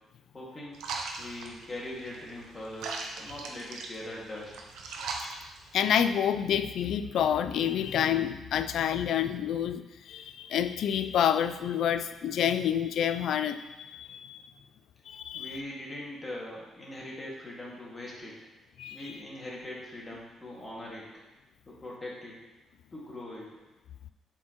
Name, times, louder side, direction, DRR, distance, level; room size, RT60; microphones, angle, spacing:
voice 1, 0.3-0.8 1.2-2.9 3.2-4.5 15.3-18.3 18.9-21.2 21.7-22.4 22.9-23.5, left 1 dB, 25° left, -4 dB, 2.0 m, -41 dB
sound 1, 0.7-6.1, right 4 dB, 85° right, 0.7 m, -40 dB
voice 2, 5.7-14.5 15.1-15.6 18.8-19.0, left 9 dB, 70° left, 11 dB, 0.3 m, -28 dB
7.4 x 4.5 x 3.0 m, 1.0 s
cardioid pair, 90°, 0 cm